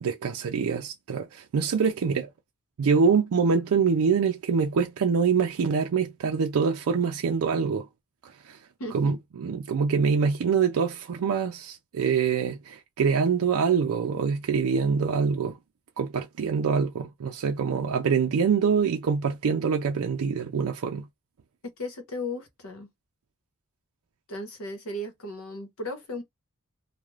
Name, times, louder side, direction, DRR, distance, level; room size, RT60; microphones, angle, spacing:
voice 1, 0.0-2.3 2.8-7.9 8.2-8.6 8.9-15.6 16.0-21.1, right 5 dB, 85° right, 0.4 m, -25 dB
voice 2, 8.8-9.2 21.8-22.9 24.3-26.2, left 1 dB, 70° left, 0.9 m, -36 dB
2.4 x 2.2 x 3.1 m
head